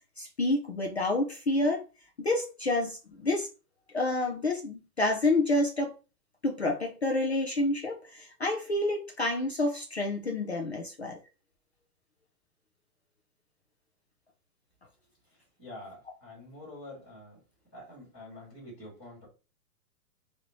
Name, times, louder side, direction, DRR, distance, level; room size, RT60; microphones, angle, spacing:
voice 1, 0.2-1.8 2.2-3.5 3.9-5.9 6.4-11.2, left 2 dB, 45° left, 0.4 m, -28 dB
voice 2, 15.6-17.4 17.7-19.3, left 1 dB, 5° left, 0.7 m, -46 dB
3.1 x 2.7 x 2.9 m
hypercardioid pair, 175°, 48 cm